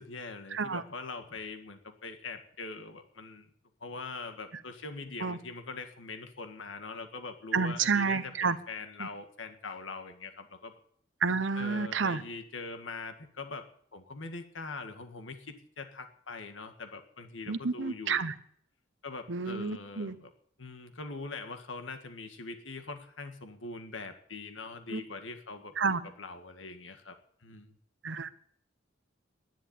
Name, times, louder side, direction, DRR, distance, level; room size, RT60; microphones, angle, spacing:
voice 1, 0.0-3.5 3.8-10.7 11.5-13.7 13.9-18.2 19.0-20.3 20.6-27.1 27.4-27.7, left 3 dB, 80° left, 7 dB, 1.7 m, -42 dB
voice 2, 0.5-0.8 5.2-5.4 7.5-8.6 9.0-9.1 11.2-12.2 17.5-18.3 19.3-20.2 24.9-25.0 25.8-26.0 28.0-28.3, right 5 dB, 65° right, 14 dB, 0.9 m, -30 dB
11.0 x 10.5 x 8.7 m, 0.64 s
head